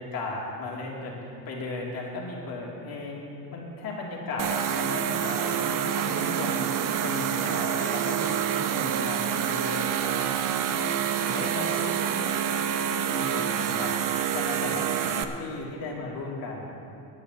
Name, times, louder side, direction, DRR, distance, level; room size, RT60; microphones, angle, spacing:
voice 1, 0.0-3.2 3.5-5.7 5.9-8.4 8.7-10.3 10.7-10.8 11.2-12.5 12.9-14.9 15.1-16.7, left 2 dB, 60° left, -2 dB, 2.8 m, -35 dB
sound 1, 4.4-15.2, right 9 dB, 55° right, 0.9 m, -27 dB
10.0 x 9.8 x 7.9 m, 2.9 s
cardioid pair, 115°, 39 cm